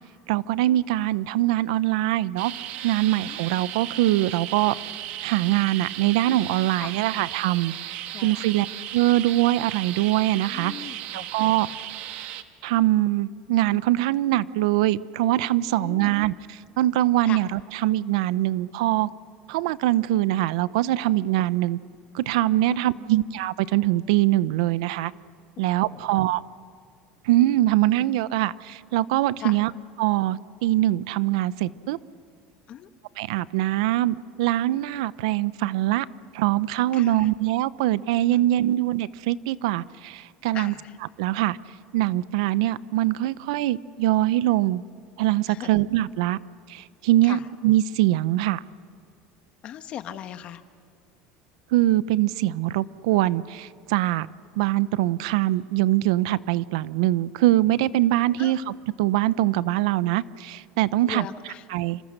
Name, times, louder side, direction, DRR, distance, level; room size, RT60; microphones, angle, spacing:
voice 1, 0.3-2.5 2.8-4.7 5.2-8.7 8.9-11.7 12.6-19.1 19.5-21.8 22.1-25.1 25.6-26.4 27.2-29.7 30.0-32.0 33.2-36.1 36.3-40.7 41.2-41.6 41.9-44.8 45.2-46.4 46.7-48.6 51.7-54.3 54.6-61.3 61.7-62.0, right 15 dB, 90° right, 17 dB, 0.7 m, -23 dB
sound 1, 2.4-12.4, right 12 dB, 55° right, 1.4 m, -36 dB
voice 2, 6.8-7.3 8.1-8.5 10.4-11.7 15.7-16.2 17.2-17.4 22.7-23.1 25.9-26.2 29.4-29.6 32.7-32.9 36.9-37.3 38.3-38.5 40.5-41.0 45.5-45.7 47.2-47.5 49.6-50.6 58.4-58.6 61.0-61.7, left 10 dB, 35° left, 10 dB, 1.2 m, -39 dB
28.5 x 26.0 x 6.6 m, 2.3 s
cardioid pair, 160°, 3 cm